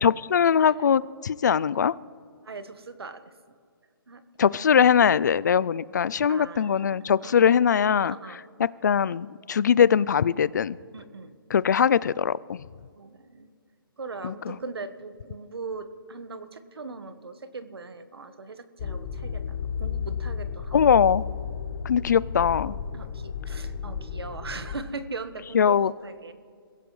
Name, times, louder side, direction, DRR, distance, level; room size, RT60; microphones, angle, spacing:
voice 1, 0.0-1.9 4.4-8.2 8.6-10.8 11.5-12.6 14.2-14.6 20.7-21.2 21.9-22.7 25.5-25.9, left 7 dB, 50° left, 21 dB, 0.4 m, -21 dB
voice 2, 2.4-3.3 4.1-4.2 6.3-7.5 8.0-8.4 10.9-11.3 13.0-13.5 14.0-21.0 22.9-26.3, right 4 dB, 90° right, 10 dB, 1.3 m, -40 dB
sound 1, 18.8-24.8, left 7 dB, 30° left, 0.8 m, -33 dB
27.5 x 16.0 x 3.2 m, 2.2 s
hypercardioid pair, 165°, 13 cm